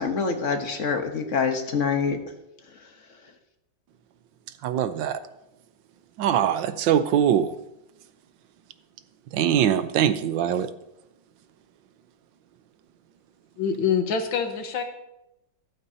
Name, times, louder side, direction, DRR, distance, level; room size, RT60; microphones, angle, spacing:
voice 1, 0.0-2.2, left 5 dB, 45° left, 5 dB, 1.3 m, -25 dB
voice 2, 4.6-5.2 6.2-7.6 9.3-10.7, right 9 dB, 80° right, 11 dB, 1.4 m, -22 dB
voice 3, 13.6-14.8, left 6 dB, 90° left, 6 dB, 1.9 m, -25 dB
13.5 x 12.0 x 2.8 m, 0.88 s
omnidirectional pair, 2.0 m